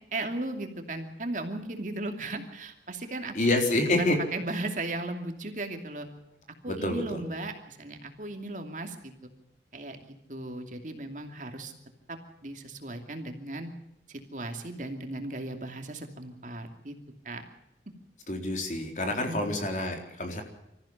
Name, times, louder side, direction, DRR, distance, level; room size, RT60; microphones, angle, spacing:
voice 1, 0.1-3.3 4.0-6.1 6.6-9.3 9.7-10.0 10.3-11.7 12.1-13.7 14.1-16.9 17.2-17.4 19.3-19.6, right 2 dB, 45° right, 5 dB, 2.6 m, -36 dB
voice 2, 3.3-4.2 6.7-7.2 18.3-20.4, left 2 dB, 45° left, 3 dB, 4.0 m, -27 dB
26.0 x 15.0 x 7.2 m, 0.87 s
head